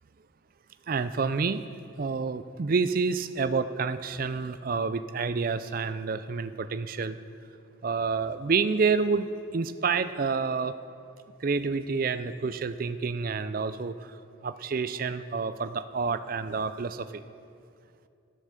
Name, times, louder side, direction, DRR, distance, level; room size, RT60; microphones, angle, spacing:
voice 1, 0.9-1.6 2.0-7.2 7.8-9.3 9.5-10.7 11.4-13.9 14.4-17.0, right 5 dB, 45° right, 12 dB, 0.4 m, -28 dB
12.0 x 9.0 x 6.6 m, 2.5 s
head